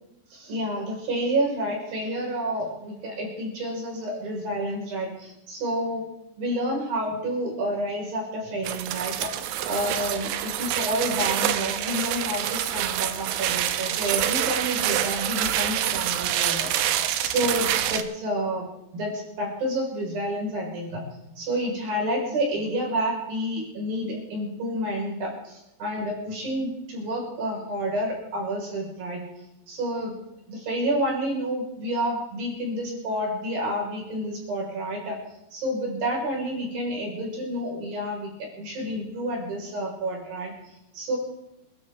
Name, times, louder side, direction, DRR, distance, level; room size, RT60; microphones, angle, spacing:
voice 1, 0.3-6.1 6.4-9.3 9.7-18.7 18.9-21.0 21.4-29.2 29.7-30.1 30.5-35.2 35.5-40.5 40.9-41.2, right 1 dB, 55° right, -1 dB, 6.4 m, -29 dB
sound 1, 8.6-18.0, right 11 dB, 85° right, 3.2 m, -26 dB
28.5 x 13.0 x 3.6 m, 0.86 s
omnidirectional pair, 5.0 m